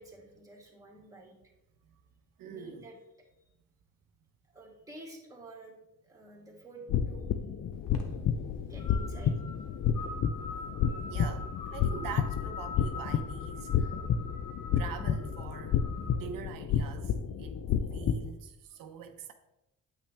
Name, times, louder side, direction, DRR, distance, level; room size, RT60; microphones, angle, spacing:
voice 1, 0.0-1.3 2.4-3.3 4.5-5.7 6.1-7.3 8.7-9.4, right 2 dB, 10° right, 2.2 m, -50 dB
voice 2, 2.4-2.9 8.0-8.3 10.5-10.6 10.9-13.9 14.8-17.6 17.9-19.3, right 7 dB, 80° right, 0.7 m, -44 dB
sound 1, 6.9-18.3, left 8 dB, 55° left, 0.5 m, -31 dB
sound 2, 7.7-16.2, left 4 dB, 85° left, 1.2 m, -45 dB
8.6 x 5.7 x 3.3 m
cardioid pair, 90°, 33 cm